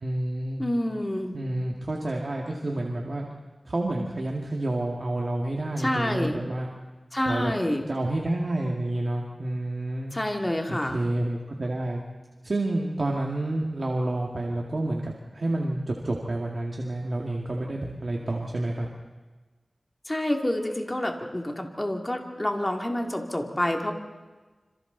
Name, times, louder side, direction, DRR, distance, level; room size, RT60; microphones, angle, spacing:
voice 1, 0.0-0.6 1.3-3.3 3.7-6.7 7.3-7.5 7.9-10.1 10.7-12.0 12.4-18.9, right 1 dB, 60° right, -1 dB, 2.1 m, -29 dB
voice 2, 0.6-1.3 5.8-6.4 7.1-7.9 10.1-11.0 20.1-23.9, left 1 dB, 25° left, 2 dB, 2.6 m, -28 dB
27.0 x 26.5 x 4.0 m, 1.3 s
wide cardioid pair, 70°, 0 cm